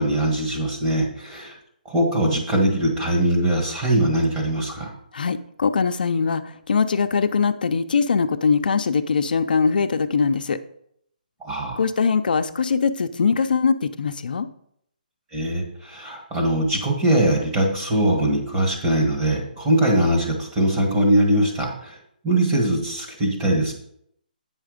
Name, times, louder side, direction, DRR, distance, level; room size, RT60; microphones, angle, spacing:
voice 1, 0.0-1.6 1.9-4.9 11.4-11.8 15.3-22.0 22.2-23.7, right 1 dB, 15° right, -2 dB, 1.7 m, -21 dB
voice 2, 5.1-10.6 11.8-14.5, left 5 dB, 70° left, 8 dB, 0.6 m, -22 dB
9.0 x 5.7 x 5.1 m, 0.71 s
hypercardioid pair, 165°, 5 cm